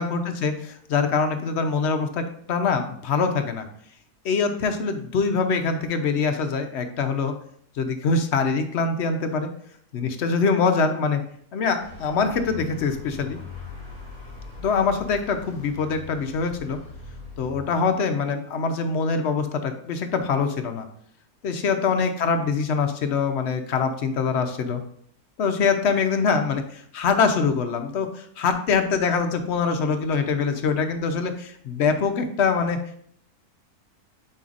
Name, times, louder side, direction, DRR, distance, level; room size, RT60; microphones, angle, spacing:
voice 1, 0.0-3.6 4.2-7.3 7.8-9.5 9.9-11.2 11.5-13.4 14.6-16.8 17.4-20.8 21.4-24.8 25.4-32.8, left 5 dB, 60° left, 7 dB, 0.7 m, -24 dB
Vehicle, 11.8-18.2, left 4 dB, 75° right, 3.2 m, -41 dB
7.6 x 5.4 x 2.5 m, 0.63 s
omnidirectional pair, 1.6 m